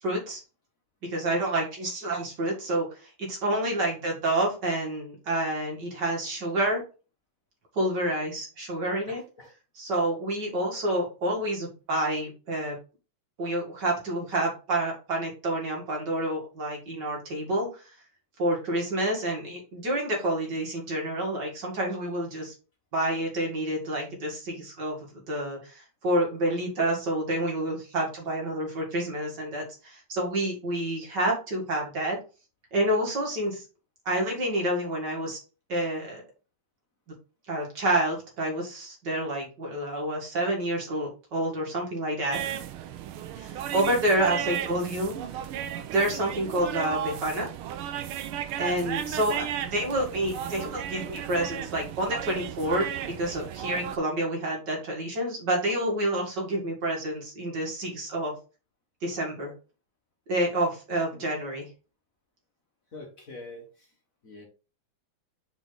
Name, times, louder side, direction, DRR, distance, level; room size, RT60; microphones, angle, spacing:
voice 1, 0.0-0.4 1.0-6.8 7.8-9.2 9.8-12.8 13.4-17.8 18.4-22.5 22.9-32.2 32.7-33.6 34.1-35.4 35.7-36.2 37.5-42.4 43.4-45.1 45.7-47.5 48.6-58.3 59.0-59.5 60.3-61.6, right 1 dB, 55° right, -1 dB, 2.7 m, -28 dB
voice 2, 9.1-9.5 44.3-44.8 61.1-61.3 62.9-63.9 64.2-64.5, left 2 dB, 45° left, 0 dB, 1.7 m, -44 dB
sound 1, 42.3-54.0, right 10 dB, 85° right, 1.6 m, -35 dB
5.2 x 4.9 x 4.0 m, 0.33 s
omnidirectional pair, 2.3 m